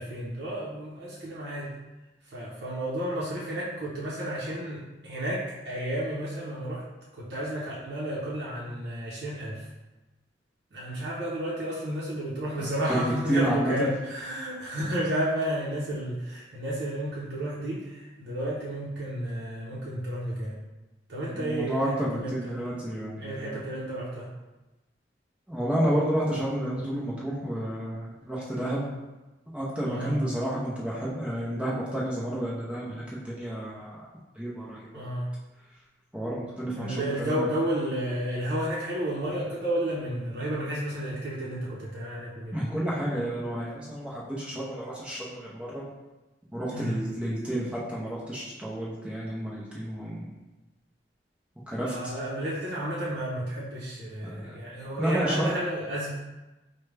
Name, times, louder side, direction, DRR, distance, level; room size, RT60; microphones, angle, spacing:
voice 1, 0.0-1.7 2.3-6.8 7.1-9.7 10.7-20.6 21.1-22.7 23.2-24.3 29.9-30.2 34.9-35.3 36.8-42.6 46.7-47.0 51.8-56.1, right 1 dB, 65° right, -6 dB, 0.7 m, -32 dB
voice 2, 12.6-13.0 13.3-13.9 21.3-23.6 25.5-28.8 29.5-34.1 34.4-35.0 36.1-37.5 42.5-45.8 46.5-50.3 51.7-52.1 54.2-54.5 55.0-55.5, right 1 dB, 5° right, -7 dB, 0.6 m, -30 dB
4.8 x 2.2 x 3.2 m, 1.1 s
head